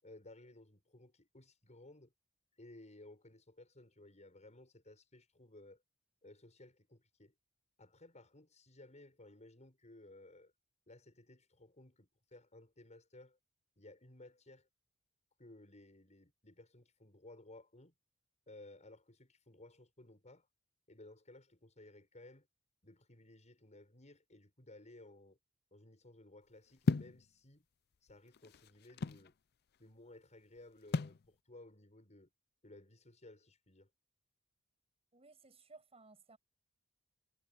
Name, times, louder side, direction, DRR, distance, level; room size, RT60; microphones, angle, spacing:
voice 1, 0.0-2.1 2.6-5.8 6.2-7.3 7.8-10.5 10.9-13.4 13.8-14.7 15.4-17.9 18.5-20.5 20.9-22.5 22.8-25.4 25.7-27.7 28.0-29.4 29.8-32.3 32.6-33.9, left 2 dB, 35° left, 7.2 m, -58 dB
sound 1, 26.9-27.2 28.1-29.3 30.9-31.2, left 4 dB, 50° left, 0.5 m, -33 dB
voice 2, 35.1-36.4, right 3 dB, 30° right, 7.8 m, -59 dB
head